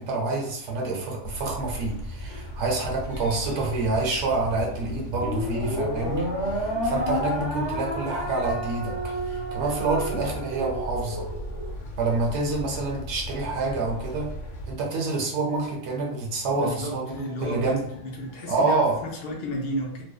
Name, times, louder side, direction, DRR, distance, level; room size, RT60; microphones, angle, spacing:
voice 1, 0.0-11.3 12.0-14.3 14.7-17.1 17.4-17.9 18.5-19.0, right 3 dB, 70° right, -1 dB, 0.8 m, -27 dB
sound 1, 1.2-14.8, left 1 dB, 85° left, 0.9 m, -37 dB
sound 2, 5.1-11.7, equal, 30° left, 0.9 m, -31 dB
voice 2, 16.5-20.0, equal, 60° left, 0 dB, 0.7 m, -33 dB
2.6 x 2.1 x 2.2 m, 0.78 s
omnidirectional pair, 1.2 m